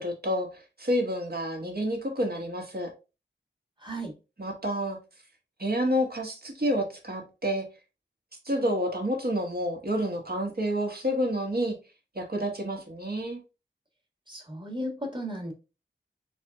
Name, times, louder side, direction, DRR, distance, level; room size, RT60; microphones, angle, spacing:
voice 1, 0.0-2.9 4.4-5.0 5.6-7.6 8.4-11.7 12.1-13.4, equal, 50° right, 1.4 m, -29 dB
voice 2, 3.8-4.1 14.3-15.5, equal, 25° right, 1.5 m, -35 dB
4.0 x 3.0 x 3.4 m
wide cardioid pair, 55°, 20 cm